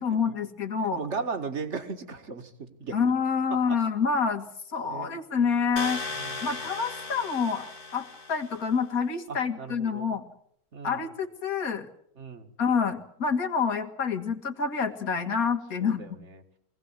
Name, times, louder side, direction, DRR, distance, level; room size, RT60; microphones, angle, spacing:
voice 1, 0.0-1.0 2.9-6.0 6.4-10.2 10.8-11.9 12.6-16.0, left 5 dB, 70° left, 8 dB, 2.3 m, -27 dB
voice 2, 0.8-3.0 3.5-3.8 4.9-5.1 6.1-6.5 9.3-10.2 10.7-11.0 12.2-12.5 15.8-16.4, right 5 dB, 50° right, 8 dB, 2.2 m, -37 dB
sound 1, 5.8-8.7, left 3 dB, 40° left, 1.4 m, -37 dB
23.5 x 17.5 x 8.8 m, 0.71 s
omnidirectional pair, 1.5 m